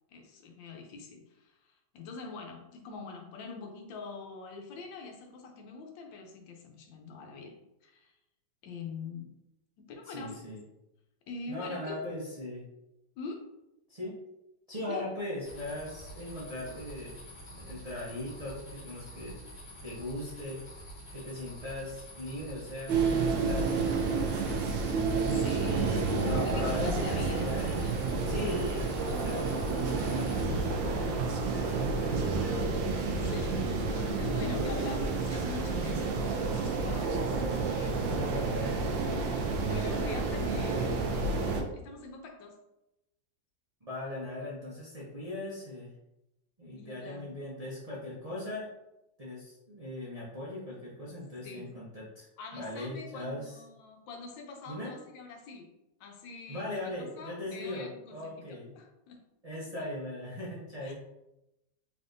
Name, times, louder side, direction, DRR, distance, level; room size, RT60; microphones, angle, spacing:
voice 1, 0.1-7.6 7.8-8.1 8.6-9.3 9.8-10.4 11.3-12.1 13.2-13.4 14.7-15.1 25.3-25.8 26.4-27.5 27.8-28.0 29.1-29.2 33.0-37.3 37.7-38.3 39.6-42.5 46.8-47.4 51.4-51.7 52.4-55.7 56.0-58.5 58.8-59.2 60.8-60.9, left 4 dB, 80° left, 3 dB, 1.4 m, -43 dB
voice 2, 10.0-10.6 11.5-12.6 13.9-14.2 14.7-17.2 17.5-19.4 19.8-25.1 25.6-27.8 28.3-32.6 38.2-39.2 43.8-45.9 46.6-48.7 49.2-52.3 52.5-53.6 54.7-54.9 56.5-58.8 59.4-60.9, left 1 dB, 40° right, -7 dB, 0.5 m, -39 dB
sound 1, 15.4-30.5, right 1 dB, 45° left, 1.3 m, -47 dB
sound 2, 22.9-41.6, right 4 dB, 90° right, 1.3 m, -30 dB
4.1 x 3.4 x 2.6 m, 0.91 s
omnidirectional pair, 2.0 m